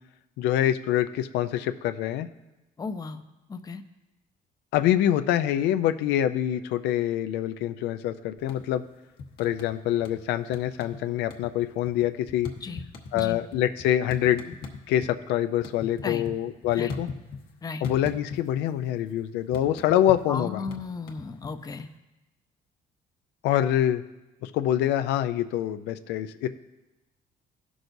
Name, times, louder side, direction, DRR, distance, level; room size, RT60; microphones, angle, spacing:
voice 1, 0.4-2.3 4.7-8.8 9.4-12.5 13.1-14.6 14.9-17.1 17.8-20.6 23.4-24.0 24.4-26.5, left 11 dB, 85° left, 10 dB, 0.4 m, -25 dB
voice 2, 2.8-3.2 3.5-3.8 12.6-12.8 13.1-13.4 16.0-16.2 16.7-16.9 17.6-17.8 20.3-21.9, left 4 dB, 20° left, 8 dB, 0.6 m, -35 dB
sound 1, 8.4-8.9 9.2-10.2 10.5-11.0 11.2-15.1 15.4-17.5 17.8-18.7 18.9-21.8, left 4 dB, 70° left, 1.3 m, -39 dB
15.5 x 6.2 x 2.6 m, 1.0 s
cardioid pair, 110°, 17 cm